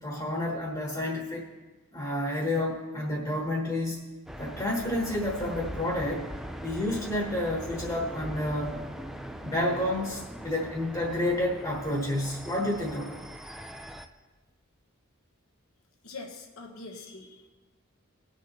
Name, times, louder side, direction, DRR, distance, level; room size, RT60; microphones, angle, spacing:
voice 1, 0.0-1.5 1.9-4.0 4.4-6.3 6.6-8.8 9.4-13.2, left 1 dB, 20° left, -2 dB, 1.3 m, -30 dB
sound 1, 4.3-14.1, equal, ahead, 0.4 m, -41 dB
voice 2, 16.0-17.5, left 3 dB, 75° left, 1 dB, 1.2 m, -43 dB
19.5 x 6.8 x 3.0 m, 1.2 s
head